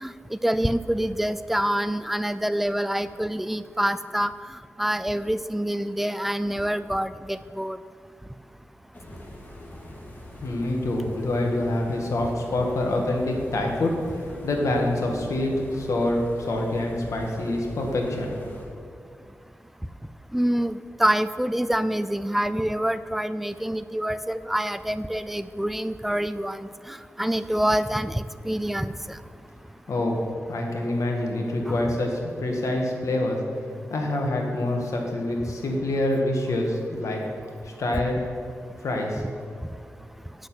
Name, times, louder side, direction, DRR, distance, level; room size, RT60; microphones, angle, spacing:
voice 1, 0.0-4.3 4.8-7.8 20.3-29.2 31.7-31.8, right 1 dB, 5° right, 12 dB, 0.4 m, -26 dB
sound 1, 8.9-18.7, left 1 dB, 30° left, 1.8 m, -42 dB
voice 2, 10.4-18.3 29.9-33.4 33.9-37.2 37.6-38.3 38.8-39.3, left 1 dB, 70° left, 1 dB, 1.8 m, -26 dB
8.2 x 6.5 x 7.9 m, 2.4 s
wide cardioid pair, 105°, 5 cm